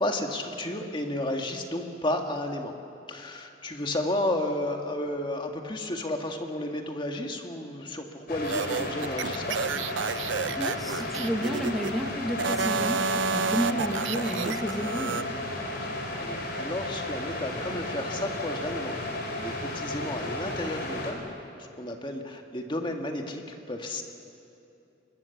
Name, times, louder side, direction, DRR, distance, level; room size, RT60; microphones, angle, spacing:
voice 1, 0.0-2.7 3.1-9.6 16.2-19.0 19.3-21.2 21.8-24.0, left 1 dB, 25° left, 3 dB, 1.8 m, -32 dB
sound 1, 8.3-21.1, left 1 dB, 55° left, 4.0 m, -34 dB
sound 2, 8.4-11.9 12.3-15.2, right 5 dB, 90° right, 0.6 m, -30 dB
voice 2, 10.6-15.2, equal, ahead, 3 dB, 1.5 m, -31 dB
24.0 x 21.0 x 7.1 m, 2.7 s
head